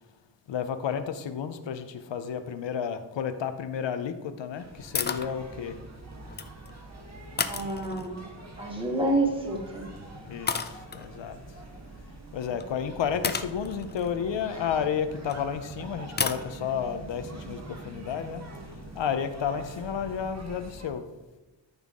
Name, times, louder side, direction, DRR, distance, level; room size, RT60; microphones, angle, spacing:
voice 1, 0.5-5.7 10.3-10.5 11.0-11.4 12.3-18.4 19.0-21.0, left 7 dB, 75° left, 10 dB, 0.7 m, -31 dB
sound 1, 4.5-20.9, right 2 dB, 35° right, 1.5 m, -44 dB
sound 2, 4.9-5.3 6.2-6.7 7.4-8.3 9.5-9.8 10.5-11.1 12.6-12.7 13.2-15.3 16.2-16.4, left 5 dB, 25° left, 0.4 m, -32 dB
voice 2, 7.4-8.2 8.6-9.8 12.5-12.6, right 2 dB, 10° right, 0 dB, 1.8 m, -28 dB
13.5 x 5.6 x 3.7 m, 1.1 s
wide cardioid pair, 135°, 45 cm